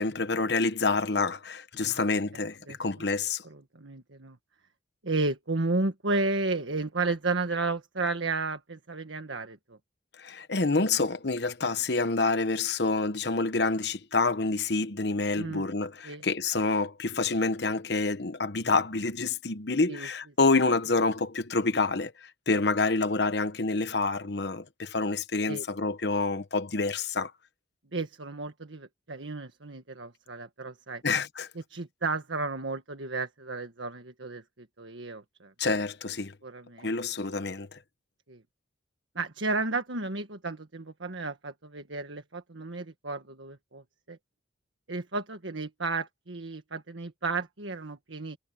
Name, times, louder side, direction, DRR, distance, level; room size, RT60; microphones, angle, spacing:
voice 1, 0.0-3.4 10.2-27.3 31.0-31.5 35.6-36.3 36.8-37.8, left 3 dB, 60° left, 1.0 m, -27 dB
voice 2, 3.4-4.4 5.0-9.8 15.4-15.7 16.0-16.2 19.9-20.1 25.5-25.6 27.9-31.0 31.7-35.5 36.4-36.9 38.3-38.4 39.1-44.2 44.9-48.4, right 3 dB, 80° right, 1.6 m, -33 dB
head